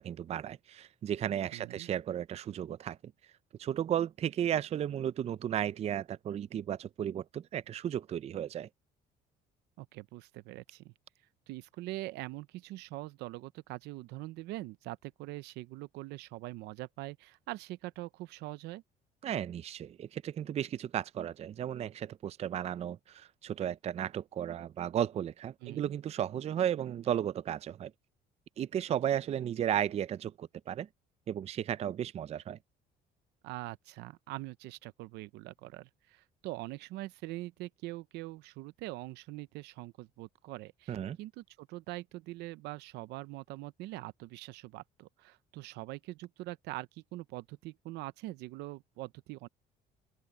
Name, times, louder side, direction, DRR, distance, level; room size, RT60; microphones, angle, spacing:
voice 1, 0.0-3.0 3.6-8.7 19.2-27.9 28.6-30.9 31.3-32.6 40.9-41.2, right 10 dB, 40° right, 0.4 m, -34 dB
voice 2, 1.5-1.9 9.8-10.9 11.5-18.8 25.6-25.9 33.4-49.5, right 18 dB, 90° right, 0.7 m, -43 dB
open air
cardioid pair, 110°, 17 cm